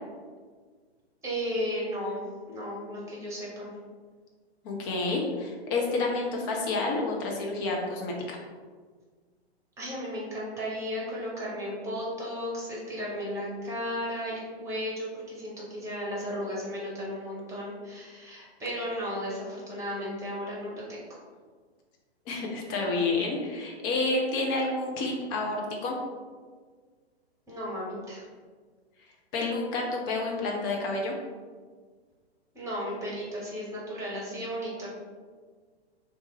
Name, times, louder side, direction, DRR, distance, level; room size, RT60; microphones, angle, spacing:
voice 1, 1.2-3.7 9.8-21.0 27.5-28.3 32.5-34.9, equal, 10° right, -5 dB, 0.9 m, -34 dB
voice 2, 4.6-8.4 22.3-26.0 29.3-31.1, left 3 dB, 20° left, -1 dB, 0.4 m, -29 dB
3.2 x 2.8 x 3.1 m, 1.5 s
figure-of-eight pair, 115°, 33 cm